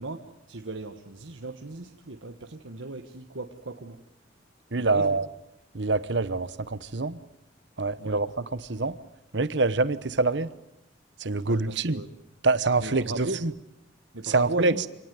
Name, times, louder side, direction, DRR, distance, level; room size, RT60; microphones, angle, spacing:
voice 1, 0.0-4.0 4.8-5.2 8.0-8.2 11.4-12.1 12.8-13.4 14.1-14.8, right 2 dB, 80° right, 6 dB, 1.5 m, -36 dB
voice 2, 4.7-5.3 5.7-7.2 7.8-9.0 9.3-10.5 11.2-12.0 12.4-13.5 14.2-14.7, right 3 dB, 60° right, 15 dB, 1.0 m, -25 dB
27.5 x 18.5 x 9.5 m, 0.84 s
head